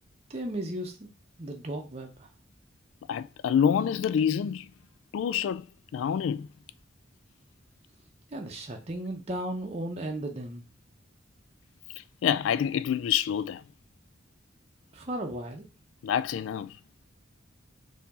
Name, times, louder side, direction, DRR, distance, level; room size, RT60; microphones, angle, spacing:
voice 1, 0.3-1.1 1.4-2.3 8.3-10.6 14.9-15.7, right 1 dB, 30° right, 0.6 m, -35 dB
voice 2, 3.1-4.7 5.1-5.7 5.9-6.5 12.0-13.6 16.0-16.8, left 8 dB, 85° left, 0.3 m, -27 dB
4.4 x 2.8 x 4.1 m
head